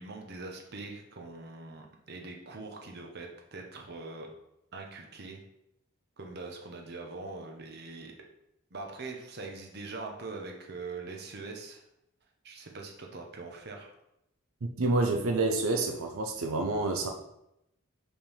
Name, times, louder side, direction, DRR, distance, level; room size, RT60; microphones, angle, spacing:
voice 1, 0.0-4.3 4.7-5.4 6.2-8.1 8.7-11.8 12.4-13.9, right 3 dB, 50° right, 1 dB, 0.9 m, -42 dB
voice 2, 14.6-17.1, right 2 dB, 90° right, 3 dB, 0.6 m, -28 dB
5.1 x 3.5 x 5.5 m, 0.83 s
head